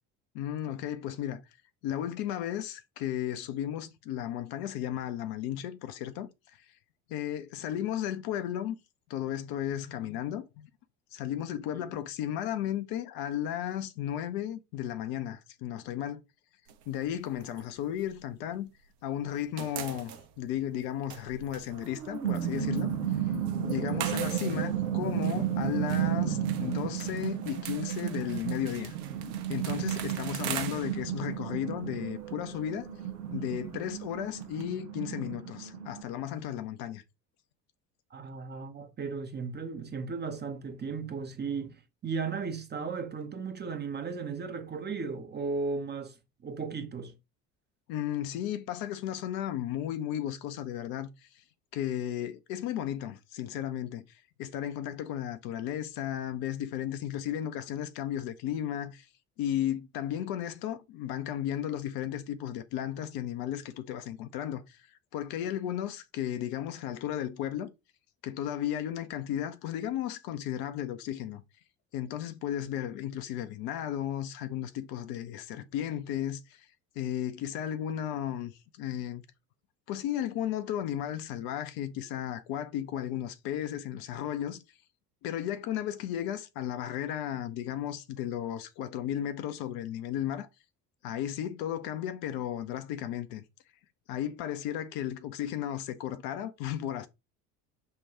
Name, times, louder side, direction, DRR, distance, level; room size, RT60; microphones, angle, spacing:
voice 1, 0.3-1.4 1.8-6.3 7.1-8.8 9.1-10.7 11.1-16.2 16.9-18.7 19.0-22.9 23.7-29.0 29.5-32.9 33.3-37.0 47.9-51.3 51.7-59.1 59.4-67.7 68.2-71.4 71.9-76.7 77.0-79.2 79.9-84.6 85.2-90.5 91.0-93.4 94.1-97.1, left 11 dB, 50° left, 0.6 m, -34 dB
sound 1, 16.7-18.9 19.2-34.6, right 10 dB, 50° right, 0.8 m, -44 dB
sound 2, 21.8-36.0, right 9 dB, 90° right, 0.6 m, -33 dB
voice 2, 38.1-47.1, right 5 dB, 20° right, 0.6 m, -36 dB
5.6 x 2.2 x 2.9 m
figure-of-eight pair, 60°, 48 cm